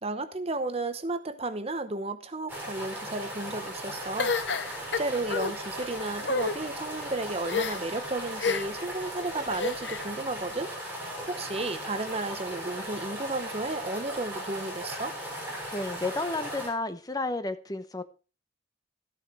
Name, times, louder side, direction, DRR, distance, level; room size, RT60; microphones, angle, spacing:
voice 1, 0.0-4.7 5.0-10.7 11.3-15.1, right 2 dB, 35° right, 0.9 m, -33 dB
sound 1, 2.5-16.7, equal, 10° right, 6.6 m, -37 dB
sound 2, 4.2-5.5 6.2-6.6 7.5-8.0 8.4-8.8 9.5-10.1, left 5 dB, 65° left, 0.9 m, -29 dB
voice 2, 15.7-18.0, left 2 dB, 20° left, 0.9 m, -31 dB
13.5 x 9.0 x 4.6 m
head